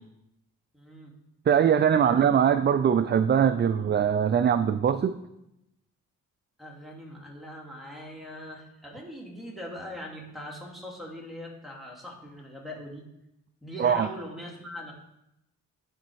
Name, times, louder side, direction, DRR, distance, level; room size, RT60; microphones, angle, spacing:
voice 1, 0.7-1.1 2.0-2.2 6.6-13.1 13.6-14.9, equal, ahead, -2 dB, 2.4 m, -41 dB
voice 2, 1.5-5.2 13.8-14.1, right 8 dB, 30° right, 12 dB, 0.4 m, -22 dB
10.5 x 4.2 x 4.7 m, 0.86 s
cardioid pair, 70°, 34 cm